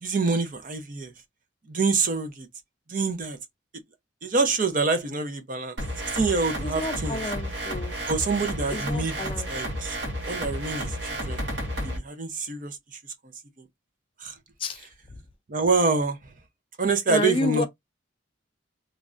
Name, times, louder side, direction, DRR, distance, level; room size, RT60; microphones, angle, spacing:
voice 1, 0.0-1.1 1.7-2.5 2.9-3.4 4.2-5.8 6.1-7.2 8.1-10.0 10.3-11.4 11.8-12.8 14.2-14.3 14.8-14.9 15.5-16.2 16.8-17.6, right 4 dB, 45° right, 0.6 m, -26 dB
sound 1, 5.8-12.0, equal, 60° right, 1.1 m, -32 dB
voice 2, 6.6-8.0 8.7-9.5 14.6-14.9 17.1-17.6, left 2 dB, 30° left, 0.4 m, -30 dB
3.1 x 2.5 x 2.5 m
head